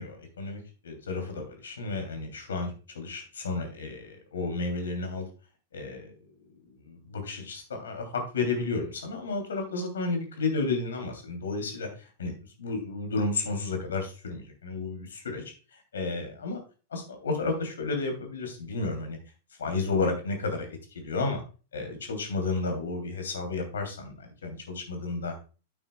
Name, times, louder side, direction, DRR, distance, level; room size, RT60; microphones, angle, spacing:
voice 1, 0.0-5.3 5.7-6.1 6.8-12.3 12.6-15.4 15.9-16.6 16.9-19.2 19.6-20.7 20.9-21.4 21.7-25.4, left 3 dB, 70° left, 5 dB, 2.9 m, -32 dB
9.2 x 8.8 x 2.3 m, 0.34 s
figure-of-eight pair, 95°, 0 cm